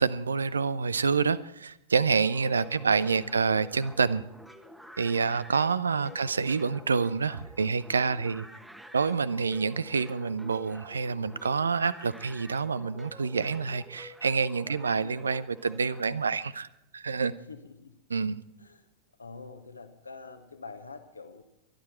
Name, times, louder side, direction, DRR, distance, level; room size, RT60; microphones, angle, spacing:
voice 1, 0.0-4.2 5.0-8.5 8.9-16.7 16.9-17.3 18.1-18.4, right 5 dB, 75° right, 18 dB, 0.6 m, -27 dB
sound 1, 2.1-16.0, equal, 5° right, 1.3 m, -49 dB
voice 2, 2.7-3.3 6.1-6.5 14.6-15.2 17.3-18.0 18.6-18.9 19.2-21.4, left 4 dB, 80° left, 7 dB, 1.2 m, -47 dB
23.0 x 11.5 x 4.4 m, 0.85 s
figure-of-eight pair, 90°, 0 cm